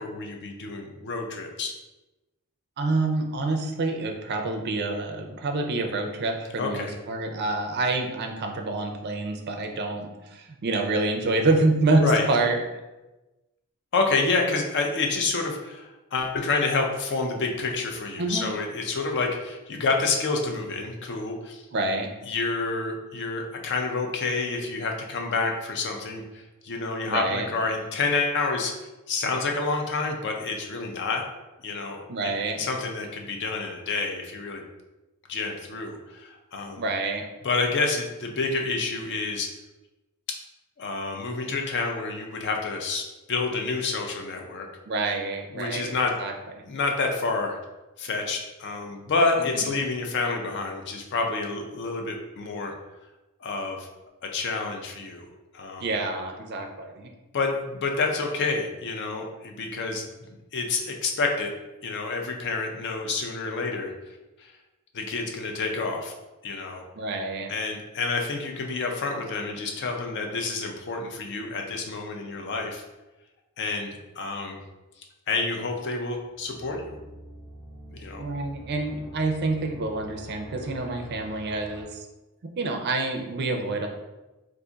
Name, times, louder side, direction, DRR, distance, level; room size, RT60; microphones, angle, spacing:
voice 1, 0.0-1.7 6.6-7.0 12.0-12.2 13.9-21.6 22.3-28.7 29.1-31.2 31.6-32.3 32.6-34.6 35.3-36.8 37.4-39.5 40.8-44.7 45.5-46.1 46.7-47.6 48.0-52.7 53.4-53.9 54.2-55.3 55.5-55.9 57.3-60.0 60.5-61.5 61.8-63.9 64.9-66.1 66.4-66.8 67.5-72.8 73.6-73.9 74.2-74.6 75.3-76.9 77.9-78.2, left 3 dB, 50° left, 2 dB, 0.4 m, -28 dB
voice 2, 2.8-12.6 18.2-18.4 21.7-22.1 27.1-27.5 32.1-32.6 36.8-37.2 44.9-45.9 46.2-46.3 49.5-49.6 55.8-57.1 66.9-67.5 78.2-82.1 82.6-83.9, right 2 dB, 50° right, 3 dB, 0.4 m, -27 dB
sound 1, 76.3-81.8, right 1 dB, 30° left, 0.9 m, -44 dB
2.4 x 2.4 x 3.8 m, 1.1 s
head